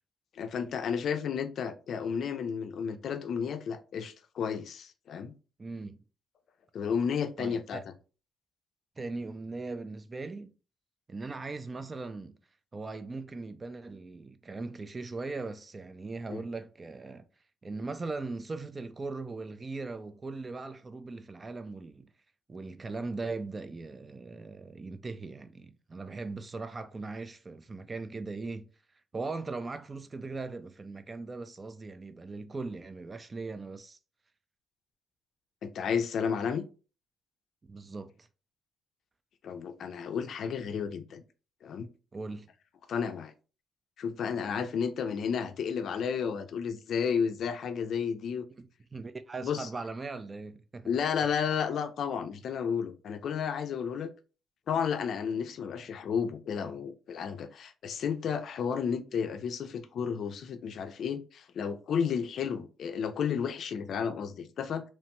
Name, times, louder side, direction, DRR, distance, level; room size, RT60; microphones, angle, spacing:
voice 1, 0.3-5.3 6.7-7.8 16.3-16.4 35.6-36.6 39.4-41.2 41.6-41.9 42.9-43.3 44.0-48.4 49.4-49.7 50.9-54.1 54.7-64.8, left 7 dB, 65° left, 0.4 m, -32 dB
voice 2, 5.6-6.0 7.4-7.8 9.0-10.5 11.1-12.4 12.7-17.3 17.6-22.1 22.5-28.7 29.1-34.0 37.6-38.3 42.1-42.5 48.6-51.0, right 3 dB, 30° right, 0.3 m, -39 dB
2.9 x 2.1 x 2.9 m
cardioid pair, 90°, 0 cm